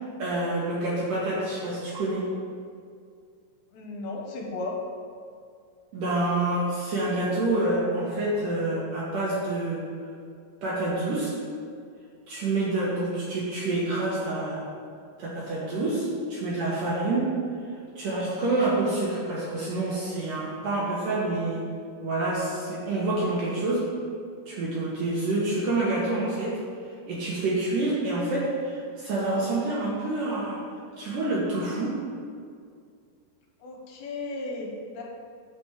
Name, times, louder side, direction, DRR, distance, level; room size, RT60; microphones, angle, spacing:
voice 1, 0.2-2.3 5.9-9.8 10.6-11.3 12.3-14.6 15.2-17.3 18.0-21.6 22.0-23.8 24.5-26.6 27.1-30.6 31.0-32.0, right 2 dB, 65° right, -6 dB, 2.4 m, -27 dB
voice 2, 3.7-4.8 33.6-35.0, left 3 dB, 75° left, 0 dB, 3.3 m, -35 dB
8.8 x 5.2 x 7.3 m, 2.2 s
omnidirectional pair, 5.2 m